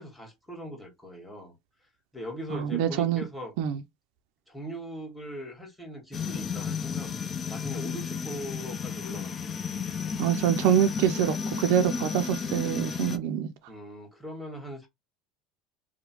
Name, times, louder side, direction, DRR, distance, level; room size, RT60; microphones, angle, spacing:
voice 1, 0.0-1.5 2.1-3.5 4.5-7.1 7.5-9.5 13.7-14.9, equal, ahead, 1.5 m, -40 dB
voice 2, 2.5-3.2 3.6-3.8 10.2-13.5, right 10 dB, 70° right, 0.4 m, -25 dB
sound 1, 6.1-13.2, left 6 dB, 30° left, 0.4 m, -33 dB
2.9 x 2.0 x 3.0 m
supercardioid pair, 100°, 0 cm